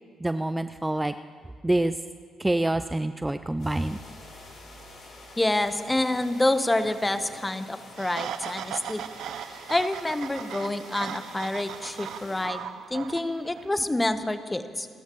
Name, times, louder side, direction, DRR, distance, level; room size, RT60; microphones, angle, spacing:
voice 1, 0.2-1.1 1.6-1.9 2.4-4.0, right 1 dB, 15° right, 11 dB, 0.4 m, -26 dB
sound 1, 3.5-6.0, left 1 dB, 50° right, 3.1 m, -55 dB
sound 2, 3.6-12.5, left 2 dB, 70° left, 5.2 m, -48 dB
voice 2, 5.4-9.0 9.7-12.6 12.9-14.9, left 1 dB, 15° left, 10 dB, 1.1 m, -27 dB
sound 3, 8.0-13.7, right 10 dB, 70° right, 0.4 m, -38 dB
29.0 x 13.5 x 3.1 m, 2.1 s
hypercardioid pair, 50°, 0 cm